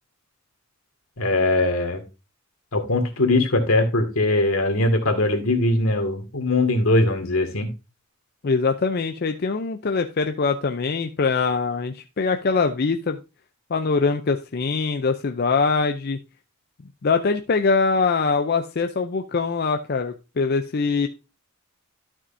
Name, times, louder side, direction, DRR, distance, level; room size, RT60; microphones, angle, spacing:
voice 1, 1.2-2.0 2.7-7.7, left 2 dB, 85° left, 5 dB, 2.0 m, -21 dB
voice 2, 8.4-13.2 13.7-16.2 17.0-21.1, left 4 dB, 50° left, 6 dB, 0.5 m, -23 dB
12.0 x 6.2 x 2.6 m, 0.28 s
head